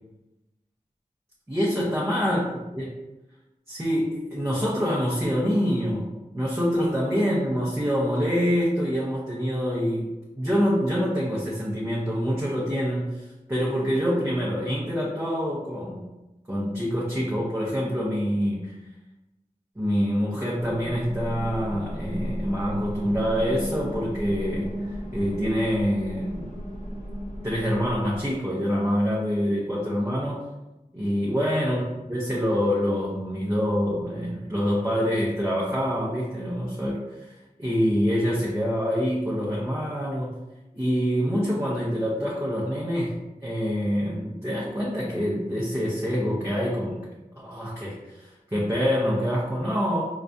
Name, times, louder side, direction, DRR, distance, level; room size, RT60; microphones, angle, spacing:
voice 1, 1.5-2.5 2.7-2.9 3.7-6.1 6.3-10.1 10.4-16.1 16.5-18.7 19.8-24.7 25.1-26.5 27.4-30.4 30.9-37.3 37.6-40.3 40.7-43.2 43.4-47.0 47.4-50.0, equal, 15° right, -6 dB, 0.7 m, -26 dB
sound 1, 20.6-28.4, equal, 55° left, 0.8 m, -34 dB
4.7 x 2.2 x 2.6 m, 1.0 s
wide cardioid pair, 55°, 15 cm